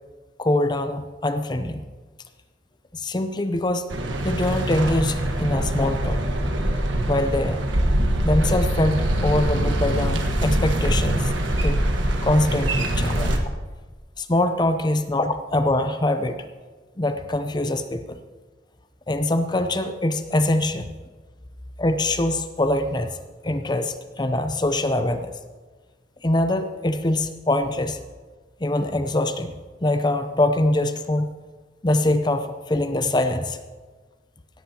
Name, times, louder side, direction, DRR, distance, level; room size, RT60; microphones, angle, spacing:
voice 1, 0.4-1.8 2.9-3.9 4.2-6.2 7.1-7.6 8.2-11.3 11.6-11.8 12.2-13.3 14.2-16.5 17.0-18.2 19.1-20.9 21.8-23.2 23.4-25.4 26.2-28.0 28.6-29.5 29.8-31.3 31.8-33.6, left 1 dB, 25° left, 9 dB, 0.6 m, -23 dB
sound 1, 3.9-13.4, right 1 dB, 90° right, 1.4 m, -23 dB
17.5 x 13.5 x 2.9 m, 1.4 s
head